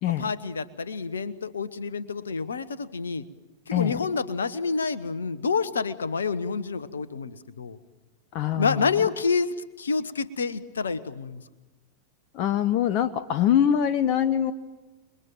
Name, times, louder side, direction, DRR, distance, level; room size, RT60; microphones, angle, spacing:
voice 1, 0.2-3.2 3.7-7.8 8.5-11.4, left 5 dB, 70° left, 15 dB, 1.2 m, -28 dB
voice 2, 8.3-8.7 12.4-14.5, left 10 dB, 40° left, 14 dB, 0.9 m, -23 dB
29.5 x 22.0 x 9.2 m, 1.2 s
figure-of-eight pair, 90°, 0 cm